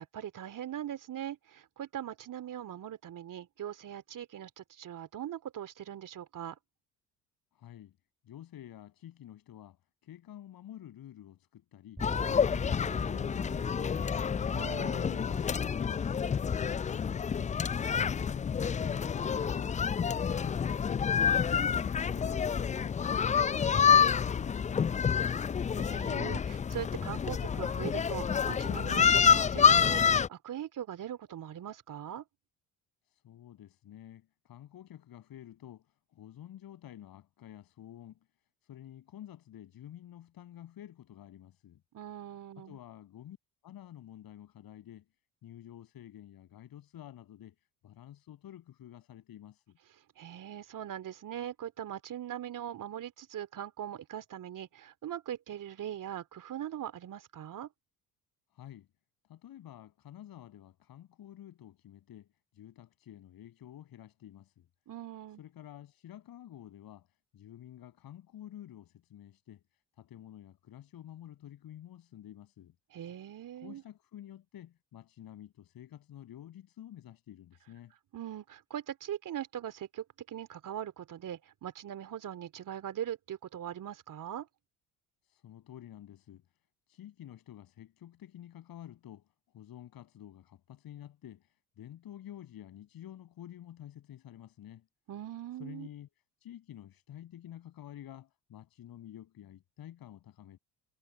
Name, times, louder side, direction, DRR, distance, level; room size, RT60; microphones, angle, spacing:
voice 1, 0.0-6.6 14.5-15.2 25.7-32.2 41.9-42.8 50.2-57.7 64.9-65.4 72.9-73.8 78.1-84.5 95.1-95.9, right 10 dB, 45° right, 3.1 m, -41 dB
voice 2, 7.5-7.9 8.2-14.3 14.9-16.2 16.5-25.5 33.1-38.2 38.6-41.8 42.6-43.4 43.6-45.1 45.4-47.6 47.8-49.8 58.5-58.9 59.2-62.3 62.5-64.7 65.4-69.6 69.9-72.7 73.6-77.9 85.2-86.4 86.9-94.9 95.6-96.1 96.4-100.6, left 11 dB, 50° left, 7.3 m, -50 dB
sound 1, 12.0-30.3, left 7 dB, 15° left, 0.5 m, -28 dB
sound 2, 12.0-21.8, right 1 dB, 5° right, 4.4 m, -47 dB
figure-of-eight pair, 50°, 45 cm